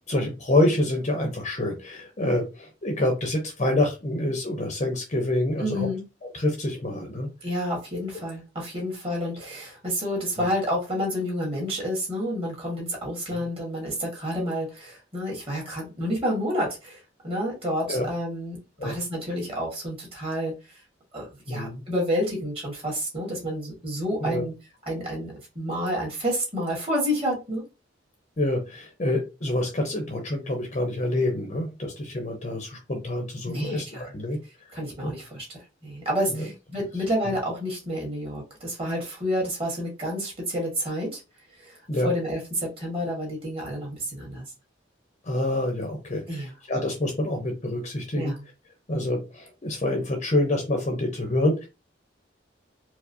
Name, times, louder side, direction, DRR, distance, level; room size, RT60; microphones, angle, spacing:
voice 1, 0.1-5.9 6.3-7.3 10.4-10.5 13.3-13.4 17.9-18.0 18.8-18.9 21.5-21.8 24.2-24.4 28.4-34.4 35.0-35.1 36.3-36.5 37.3-37.4 41.9-42.1 45.2-48.3 48.9-51.7, left 1 dB, 35° left, 3 dB, 0.7 m, -27 dB
voice 2, 5.6-6.0 7.4-20.8 21.1-24.5 24.9-27.6 33.4-34.0 34.7-35.5 35.8-41.2 41.6-41.8 42.0-44.4 46.3-46.5 48.1-48.4, equal, 30° right, -2 dB, 1.8 m, -29 dB
4.6 x 2.0 x 2.7 m, 0.28 s
head